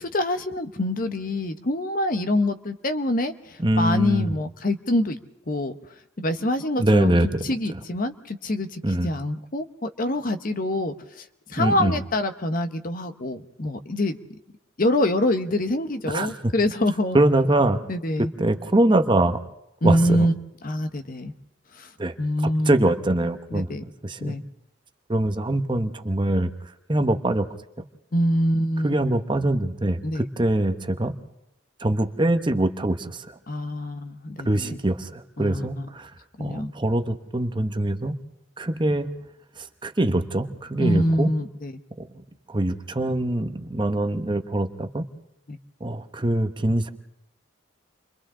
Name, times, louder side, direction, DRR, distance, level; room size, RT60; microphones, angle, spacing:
voice 1, 0.1-5.2 5.5-5.8 6.2-7.1 7.4-11.2 11.5-14.2 14.8-17.2 17.9-18.3 19.8-20.3 20.6-21.3 21.8-21.9 22.2-22.8 23.5-23.8 24.2-24.4 28.1-28.9 30.0-30.3 33.5-34.8 35.4-35.9 36.4-36.7 40.8-41.7 45.5-45.6, left 1 dB, 45° left, 9 dB, 0.9 m, -25 dB
voice 2, 3.6-4.3 6.8-7.8 8.8-9.1 11.6-12.0 16.1-16.3 17.1-17.8 18.4-19.4 19.8-20.3 22.0-22.1 22.7-23.7 24.0-24.4 25.1-26.5 26.9-27.5 28.8-31.1 31.8-33.3 34.4-36.1 36.4-38.1 38.6-39.2 39.6-41.3 42.5-45.1 45.8-46.9, right 1 dB, 25° right, 8 dB, 0.9 m, -23 dB
29.0 x 24.0 x 3.7 m, 0.80 s
head